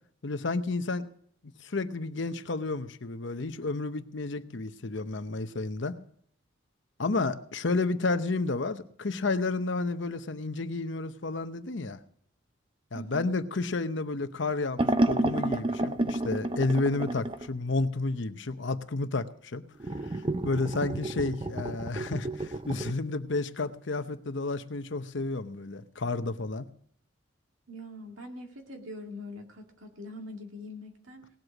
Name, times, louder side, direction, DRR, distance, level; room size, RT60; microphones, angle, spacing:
voice 1, 0.2-1.1 1.6-5.9 7.0-12.0 12.9-19.6 20.4-26.7, left 3 dB, 60° left, 10 dB, 0.8 m, -31 dB
voice 2, 12.9-13.3 27.7-31.3, left 1 dB, 75° right, 3 dB, 2.2 m, -43 dB
sound 1, 14.8-17.5 19.8-22.9, right 1 dB, 25° right, 0.6 m, -30 dB
18.5 x 8.0 x 5.9 m, 0.64 s
head